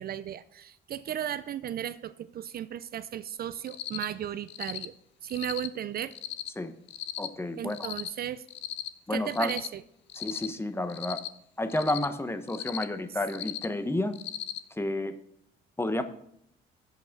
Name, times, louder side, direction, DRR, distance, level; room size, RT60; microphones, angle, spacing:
voice 1, 0.0-4.9 5.2-6.1 7.6-8.4 9.1-9.8, right 10 dB, 50° right, 15 dB, 0.4 m, -35 dB
Cricket, 3.7-4.0 4.5-4.8 5.3-5.7 6.1-6.5 6.9-7.3 7.7-8.1 8.5-8.9 9.3-9.7 10.1-10.5 10.9-11.3 11.7-12.0 12.5-12.8 13.3-13.6 14.1-14.6, left 12 dB, 65° left, 0.7 m, -37 dB
voice 2, 7.2-7.9 9.1-9.5 10.1-11.2 11.6-14.2 14.7-15.2 15.8-16.0, left 1 dB, 10° left, 10 dB, 0.9 m, -31 dB
7.8 x 5.6 x 5.9 m, 0.73 s
cardioid pair, 80°, 20 cm